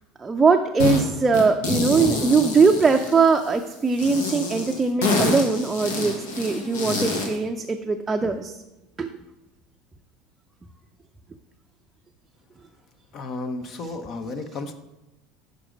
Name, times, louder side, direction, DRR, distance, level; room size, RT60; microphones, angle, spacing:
voice 1, 0.2-8.5 9.0-9.1, right 4 dB, 20° right, 4 dB, 0.4 m, -21 dB
sound 1, 0.8-1.0 1.3-3.5 4.0-7.4, left 3 dB, 85° left, 1.3 m, -26 dB
voice 2, 13.1-14.7, left 3 dB, 50° left, 9 dB, 0.7 m, -33 dB
6.3 x 5.1 x 5.0 m, 0.96 s
supercardioid pair, 105°, 0 cm